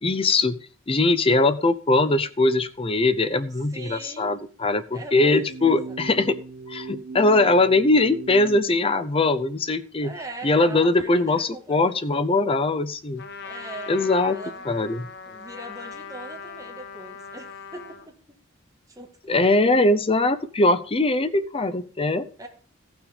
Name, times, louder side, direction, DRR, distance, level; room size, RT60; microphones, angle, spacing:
voice 1, 0.0-6.4 6.7-10.1 10.4-13.2 13.9-14.4 14.7-15.1 19.3-22.3, left 2 dB, 25° left, 11 dB, 0.6 m, -21 dB
voice 2, 3.7-4.3 4.9-6.0 10.0-11.9 13.4-14.7 15.3-18.4 18.9-19.5 22.4-22.5, right 2 dB, 15° right, 1 dB, 1.8 m, -41 dB
sound 1, 5.4-8.7, right 3 dB, 70° right, 0.6 m, -37 dB
Trumpet, 13.2-18.1, left 5 dB, 55° left, 0.9 m, -40 dB
14.5 x 6.1 x 5.0 m, 0.40 s
head